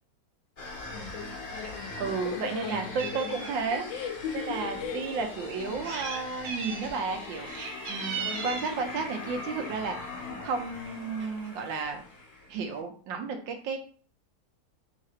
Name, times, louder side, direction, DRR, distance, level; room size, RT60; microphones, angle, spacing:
sound 1, 0.6-12.8, left 3 dB, 45° left, 1.1 m, -41 dB
voice 1, 0.8-5.1 8.2-8.7, left 7 dB, 85° left, 1.3 m, -39 dB
Meow, 1.5-1.7 2.1-3.8 4.6-4.7 5.6-6.2 6.4-6.9 7.4-8.8 9.8-10.1 10.5-10.6 10.8-10.9 11.2-11.8, right 5 dB, 60° right, 1.1 m, -38 dB
voice 2, 2.0-3.8 4.3-12.0 12.5-13.8, right 4 dB, 85° right, 1.5 m, -33 dB
3.7 x 2.4 x 4.2 m
omnidirectional pair, 2.0 m